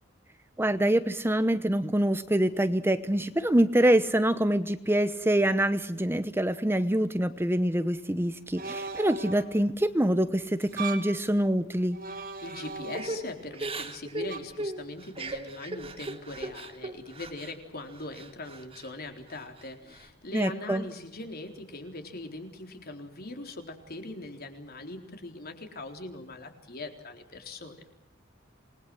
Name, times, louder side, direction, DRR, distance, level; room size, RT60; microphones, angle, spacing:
voice 1, 0.6-12.0 20.3-20.8, right 1 dB, 10° right, 11 dB, 0.9 m, -25 dB
sound 1, 8.6-9.6 10.6-11.2 11.9-13.4 14.3-14.4, right 4 dB, 50° right, 3.3 m, -38 dB
voice 2, 12.4-27.8, left 2 dB, 50° left, 5 dB, 4.0 m, -41 dB
Crying sobbing / Breathing, 12.9-17.5 17.9-18.9 19.3-20.0, right 2 dB, 30° right, 2.8 m, -38 dB
28.0 x 21.0 x 7.8 m, 0.78 s
head